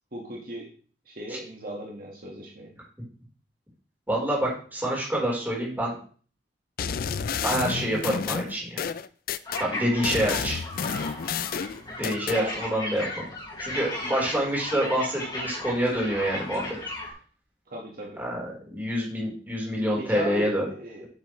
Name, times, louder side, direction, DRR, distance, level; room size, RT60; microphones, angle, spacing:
voice 1, 0.1-0.7 1.0-2.7 12.2-12.5 17.7-18.2 20.0-21.0, right 1 dB, 55° right, -2 dB, 1.7 m, -37 dB
voice 2, 4.1-5.9 7.4-8.8 9.6-10.6 12.0-13.3 13.6-16.8 18.2-20.7, equal, 10° right, -4 dB, 4.1 m, -27 dB
sound 1, 6.8-9.6 10.0-12.4, left 6 dB, 55° left, 0.4 m, -30 dB
sound 2, 9.4-17.1, left 1 dB, 25° left, 4.4 m, -36 dB
9.3 x 8.0 x 3.3 m, 0.42 s
head